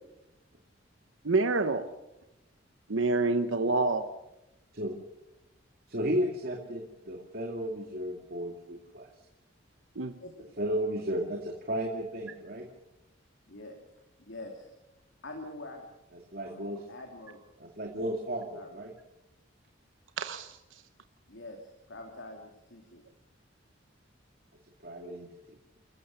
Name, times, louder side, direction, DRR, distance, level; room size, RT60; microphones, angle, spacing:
voice 1, 1.2-1.9 2.9-4.0 10.0-10.1 20.2-20.6, right 3 dB, 75° right, 9 dB, 1.1 m, -27 dB
voice 2, 5.9-9.1 10.6-12.7 16.1-16.9 17.6-18.9 24.8-25.3, equal, 50° right, 2 dB, 2.4 m, -34 dB
voice 3, 14.3-14.7 15.2-15.9 16.5-16.6 16.9-17.4 18.5-18.8 21.3-23.0, left 2 dB, 70° left, 2 dB, 3.0 m, -44 dB
28.5 x 14.5 x 6.8 m, 0.91 s
head